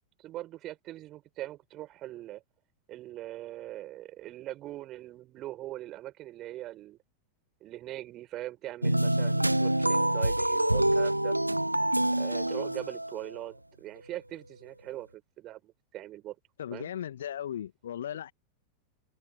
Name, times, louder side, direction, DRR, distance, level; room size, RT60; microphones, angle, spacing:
voice 1, 0.2-2.4 2.9-7.0 7.6-11.3 12.1-16.3 16.7-16.9, right 15 dB, 35° right, 5.9 m, -41 dB
sound 1, 8.8-13.4, right 1 dB, 85° right, 1.2 m, -26 dB
voice 2, 16.6-18.3, left 10 dB, 65° left, 2.2 m, -37 dB
figure-of-eight pair, 90°, 0 cm